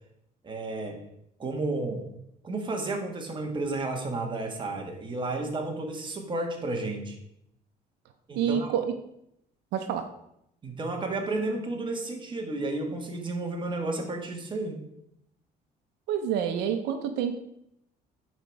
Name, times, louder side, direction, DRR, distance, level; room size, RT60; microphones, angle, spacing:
voice 1, 0.4-1.0 1.4-2.0 2.4-7.2 8.3-8.7 10.6-14.8, right 2 dB, 30° right, 2 dB, 1.8 m, -32 dB
voice 2, 8.3-8.9 9.7-10.0 16.1-17.4, right 8 dB, 90° right, 8 dB, 0.8 m, -28 dB
8.9 x 5.1 x 4.7 m, 0.77 s
cardioid pair, 110°, 17 cm